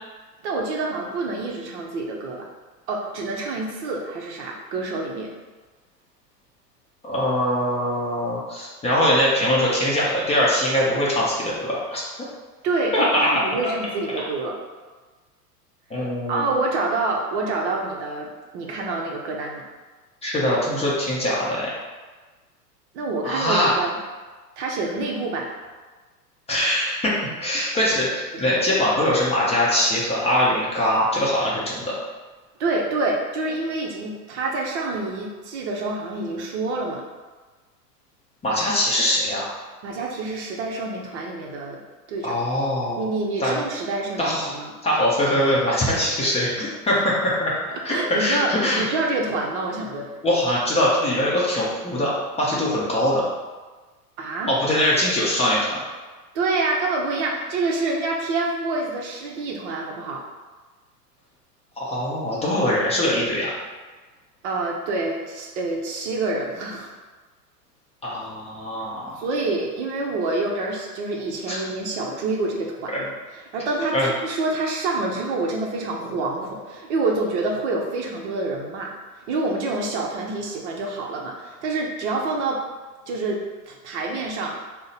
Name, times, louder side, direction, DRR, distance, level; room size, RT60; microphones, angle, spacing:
voice 1, 0.4-2.5 2.9-5.3 12.6-14.6 16.0-19.6 22.9-24.0 24.6-25.5 28.3-28.4 32.6-37.0 39.8-41.8 42.1-42.3 43.0-44.7 46.9-47.0 47.7-50.1 54.2-54.5 56.3-60.2 64.4-66.9 69.2-78.9 79.3-82.6 83.1-84.7, right 3 dB, 45° right, 0 dB, 0.7 m, -27 dB
voice 2, 7.0-12.0 12.9-13.3 15.9-16.5 20.2-21.7 23.2-23.7 26.5-31.9 38.4-39.5 42.2-43.1 43.4-43.6 44.2-44.5 44.8-47.5 47.8-48.9 50.2-52.1 52.4-53.2 54.5-55.8 61.8-63.5 68.0-69.1 71.5-71.6 72.9-73.0 73.9-74.1, left 1 dB, 15° left, -6 dB, 0.7 m, -22 dB
3.9 x 2.1 x 3.9 m, 1.3 s
figure-of-eight pair, 100°, 48 cm